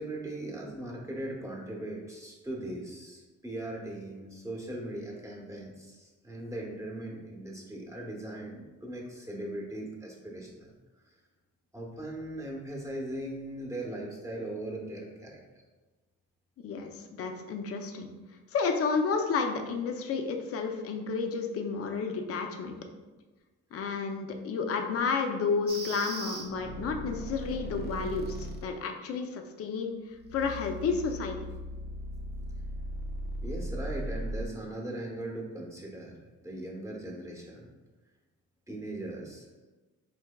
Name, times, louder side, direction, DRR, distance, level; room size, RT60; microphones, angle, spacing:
voice 1, 0.0-10.7 11.7-15.4 33.4-36.1 36.4-37.7 38.7-39.7, right 1 dB, 10° right, -2 dB, 0.8 m, -39 dB
voice 2, 16.6-18.1 18.5-22.8 23.7-31.4, left 5 dB, 50° left, 4 dB, 0.5 m, -31 dB
sound 1, 25.7-28.7 30.2-34.5, equal, 35° right, 0.5 m, -38 dB
4.5 x 2.7 x 2.2 m, 1.2 s
cardioid pair, 90°, 30 cm